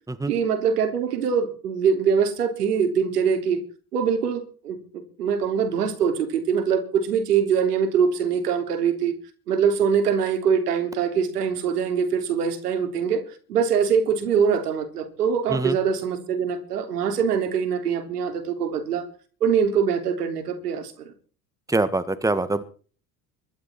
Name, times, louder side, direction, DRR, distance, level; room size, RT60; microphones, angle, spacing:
voice 1, 0.3-3.6 3.9-4.8 5.2-9.1 9.5-13.2 13.5-19.1 19.4-21.1, right 7 dB, 75° right, 7 dB, 3.4 m, -23 dB
voice 2, 21.7-22.6, right 2 dB, 5° right, 12 dB, 1.7 m, -24 dB
22.0 x 12.5 x 4.4 m, 0.41 s
figure-of-eight pair, 65°, 47 cm